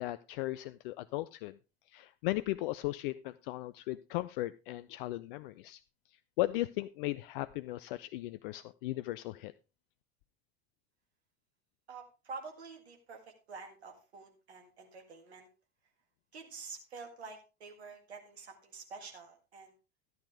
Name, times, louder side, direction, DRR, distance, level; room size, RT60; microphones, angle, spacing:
voice 1, 0.0-1.6 1.9-5.8 6.4-9.5, left 17 dB, 55° left, 17 dB, 0.4 m, -36 dB
voice 2, 11.9-15.5 16.3-19.7, right 4 dB, 75° right, 3 dB, 2.0 m, -48 dB
13.0 x 9.3 x 3.3 m, 0.30 s
figure-of-eight pair, 70°, 33 cm